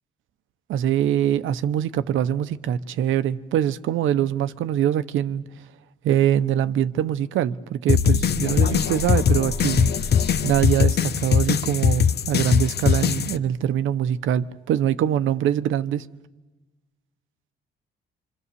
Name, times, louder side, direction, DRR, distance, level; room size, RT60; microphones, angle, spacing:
voice 1, 0.7-5.4 6.0-9.9 10.4-16.0, right 10 dB, 80° right, 1.0 m, -23 dB
sound 1, 7.9-13.4, left 8 dB, 55° left, 1.0 m, -21 dB
26.5 x 25.5 x 7.0 m
cardioid pair, 90°, 20 cm